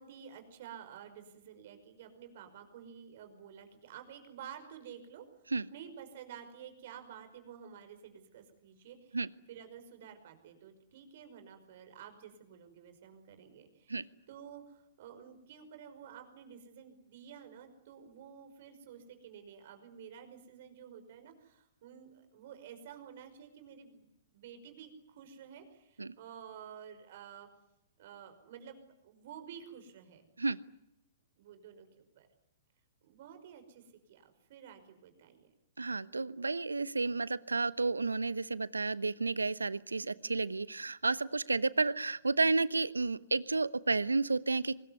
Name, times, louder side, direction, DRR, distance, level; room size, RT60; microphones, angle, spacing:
voice 1, 0.0-5.3 5.7-9.2 9.5-27.5 28.0-30.3 31.4-32.3 33.0-35.5 40.1-40.4, right 8 dB, 55° right, 8 dB, 5.5 m, -51 dB
voice 2, 35.8-44.8, right 3 dB, 90° right, 19 dB, 0.9 m, -31 dB
24.5 x 20.5 x 9.6 m, 0.79 s
figure-of-eight pair, 115°, 0 cm